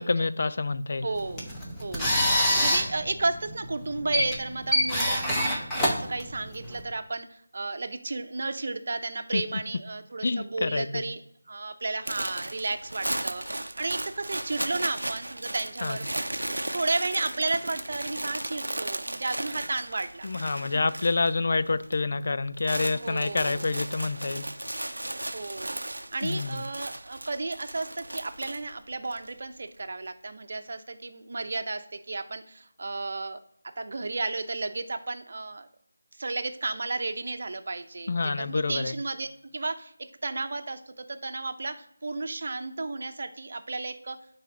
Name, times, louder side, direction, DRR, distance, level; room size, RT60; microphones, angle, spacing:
voice 1, 0.0-1.1 9.3-9.4 10.2-11.0 15.8-16.0 20.2-24.5 26.2-26.6 38.1-38.9, left 3 dB, 50° left, 13 dB, 0.4 m, -27 dB
voice 2, 1.0-1.5 1.8-7.3 7.5-11.2 11.5-16.3 16.7-20.3 20.6-20.8 22.9-23.7 25.3-25.7 26.1-33.4 33.8-35.7 36.2-39.3 39.5-39.9 40.2-44.2, right 3 dB, 50° right, 8 dB, 0.8 m, -33 dB
sound 1, 1.2-6.8, left 1 dB, 10° left, 1.1 m, -27 dB
sound 2, 12.0-21.3 21.6-22.0 22.3-29.3, right 1 dB, 85° right, 0.6 m, -36 dB
9.1 x 4.1 x 5.4 m, 0.73 s
figure-of-eight pair, 165°, 0 cm